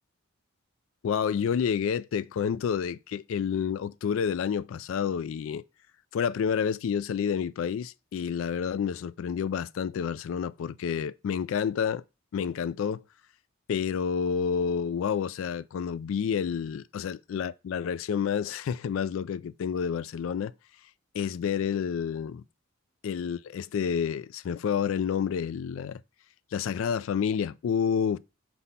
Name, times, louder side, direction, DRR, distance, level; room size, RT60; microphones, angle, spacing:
voice 1, 1.0-5.6 6.1-12.0 12.3-13.0 13.7-20.5 21.1-22.4 23.0-26.0 26.5-28.2, left 7 dB, 70° left, 0.3 m, -29 dB
4.2 x 4.1 x 5.5 m
head